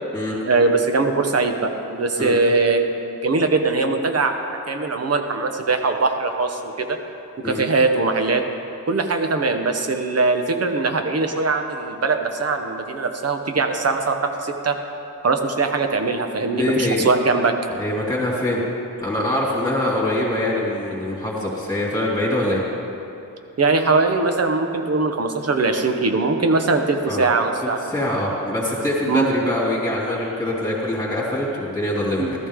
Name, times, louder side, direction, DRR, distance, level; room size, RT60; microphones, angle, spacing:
voice 1, 0.4-2.9 3.2-7.0 7.4-8.4 8.9-14.8 15.2-17.6 23.6-27.8 29.1-29.3 32.2-32.3, right 3 dB, 45° right, 5 dB, 1.2 m, -21 dB
voice 2, 16.5-17.0 17.8-18.6 19.0-22.6 27.1-27.3 27.6-32.3, left 1 dB, 10° left, -7 dB, 3.2 m, -24 dB
14.5 x 13.0 x 3.8 m, 2.8 s
cardioid pair, 75°, 33 cm